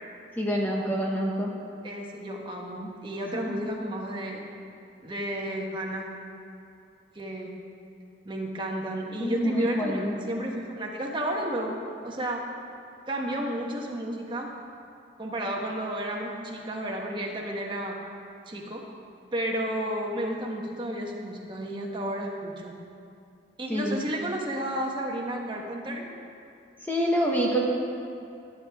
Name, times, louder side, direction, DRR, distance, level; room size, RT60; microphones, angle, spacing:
voice 1, 0.4-1.5 9.2-10.1 23.7-24.0 26.8-27.6, equal, 10° left, -3 dB, 1.2 m, -26 dB
voice 2, 1.8-4.4 5.0-6.1 7.1-7.5 8.2-11.7 12.0-12.4 13.1-14.5 15.2-18.0 18.5-18.8 19.3-22.7 23.6-26.1, right 1 dB, 25° right, -1 dB, 1.3 m, -32 dB
20.5 x 9.3 x 3.6 m, 2.5 s
head